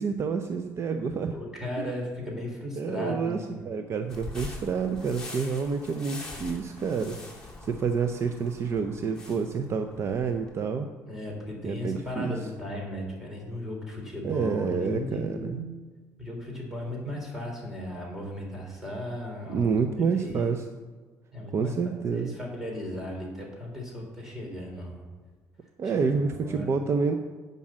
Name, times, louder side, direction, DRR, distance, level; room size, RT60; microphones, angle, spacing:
voice 1, 0.0-1.3 1.8-2.0 2.8-7.2 7.6-10.9 11.6-12.4 14.2-15.6 19.5-20.6 21.5-22.3 25.8-27.1, right 5 dB, 45° right, 6 dB, 0.6 m, -28 dB
voice 2, 1.3-3.7 11.0-15.6 16.2-19.7 20.0-20.6 21.3-21.7 22.1-25.0 25.8-26.7, left 1 dB, 5° right, -2 dB, 3.2 m, -36 dB
sound 1, 4.1-10.5, left 2 dB, 10° left, 2.1 m, -43 dB
8.7 x 5.4 x 7.4 m, 1.4 s
cardioid pair, 110°, 6 cm